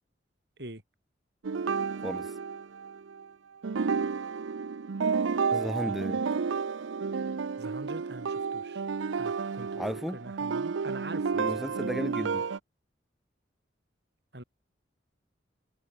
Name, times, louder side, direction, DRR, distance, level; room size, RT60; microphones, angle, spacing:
Elf Harp, 1.4-3.2 3.6-12.6, right 5 dB, 85° right, 0.5 m, -31 dB
voice 1, 2.0-2.3 5.5-6.2 9.8-10.2 11.4-12.4, equal, ahead, 0.9 m, -34 dB
voice 2, 7.6-8.8 9.2-9.8 10.1-11.9 14.3-14.4, right 1 dB, 60° right, 6.2 m, -44 dB
head